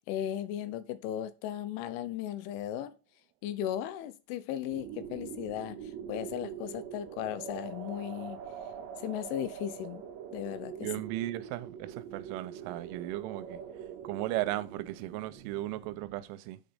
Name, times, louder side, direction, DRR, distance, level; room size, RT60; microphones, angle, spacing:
voice 1, 0.0-2.9 3.4-5.8 6.1-8.4 9.0-10.1 10.3-10.9, left 11 dB, 80° left, 3.2 m, -36 dB
sound 1, 4.7-16.2, right 8 dB, 70° right, 2.2 m, -44 dB
voice 2, 10.8-13.6 14.0-16.6, right 16 dB, 90° right, 3.1 m, -36 dB
8.9 x 5.2 x 5.4 m
omnidirectional pair, 5.6 m